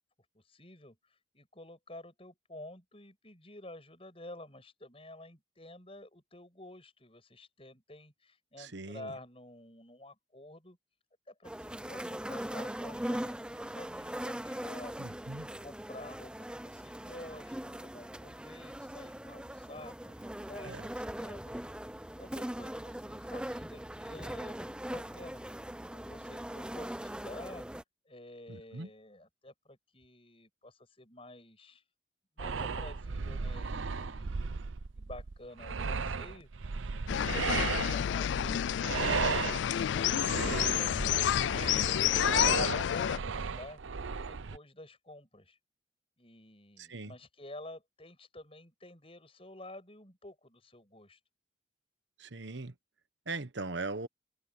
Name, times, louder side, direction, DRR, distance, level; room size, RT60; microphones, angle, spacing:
voice 1, 0.3-10.8 11.3-15.2 15.6-21.5 22.2-25.6 25.9-27.7 28.1-31.8 32.4-34.4 34.9-39.4 39.9-43.8 44.2-45.6 46.2-51.2, left 1 dB, 30° left, 7.6 m, -50 dB
voice 2, 8.6-9.1 15.0-15.5 20.6-20.8 28.5-28.9 46.9-47.1 52.2-52.7 53.3-54.1, right 3 dB, 70° right, 1.3 m, -39 dB
sound 1, 11.4-27.8, right 1 dB, 5° right, 0.5 m, -40 dB
sound 2, 32.4-44.6, right 5 dB, 85° right, 0.7 m, -35 dB
sound 3, 37.1-43.2, left 10 dB, 70° left, 0.3 m, -29 dB
head